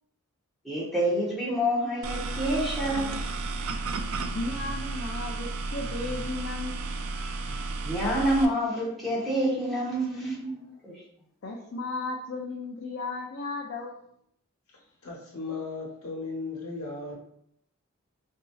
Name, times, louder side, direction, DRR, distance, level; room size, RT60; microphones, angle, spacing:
voice 1, 0.6-3.1 7.8-10.5 10.8-10.9, equal, ahead, 0.8 m, -27 dB
sound 1, 2.0-8.5, right 3 dB, 70° right, 0.3 m, -33 dB
voice 2, 4.3-6.9 11.4-14.0, left 3 dB, 55° left, 0.4 m, -35 dB
voice 3, 14.7-17.1, left 3 dB, 75° left, 1.0 m, -36 dB
4.1 x 2.6 x 2.3 m
head